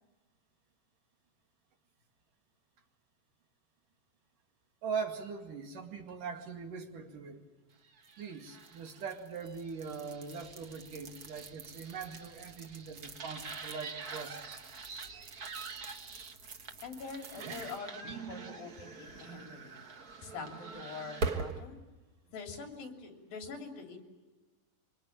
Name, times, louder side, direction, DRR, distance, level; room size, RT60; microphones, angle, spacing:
voice 1, 4.8-7.4 8.2-14.6 15.1-15.3, right 5 dB, 60° right, 4 dB, 3.7 m, -41 dB
sound 1, 8.0-21.6, right 3 dB, 80° right, 0.8 m, -43 dB
voice 2, 16.8-19.8 20.2-21.8 22.3-24.0, left 4 dB, 70° left, 4 dB, 5.0 m, -44 dB
27.0 x 24.5 x 8.7 m, 1.2 s
omnidirectional pair, 4.3 m